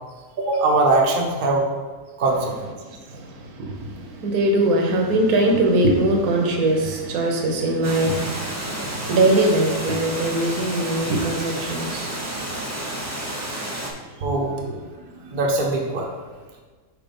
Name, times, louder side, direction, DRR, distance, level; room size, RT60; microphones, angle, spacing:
voice 1, 0.4-1.7 2.2-2.7 14.2-14.6 15.1-16.1, right 2 dB, 40° right, 0 dB, 0.8 m, -21 dB
voice 2, 2.9-13.4 14.7-14.8, right 1 dB, 65° right, 2 dB, 1.4 m, -22 dB
Water, 7.8-13.9, right 1 dB, 25° right, 0.4 m, -31 dB
4.8 x 4.7 x 5.2 m, 1.4 s
omnidirectional pair, 1.8 m